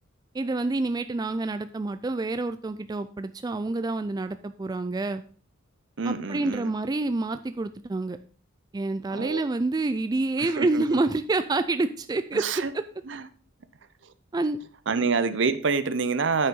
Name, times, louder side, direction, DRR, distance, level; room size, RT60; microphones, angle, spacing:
voice 1, 0.3-5.2 6.0-8.2 8.7-12.4 14.3-14.6, right 2 dB, 20° right, 10 dB, 0.3 m, -27 dB
voice 2, 6.0-6.7 9.1-9.5 10.4-11.0 12.3-12.7 13.1-13.3 14.0-14.1 14.9-16.5, right 4 dB, 65° right, 13 dB, 0.7 m, -27 dB
9.0 x 5.7 x 5.3 m, 0.43 s
head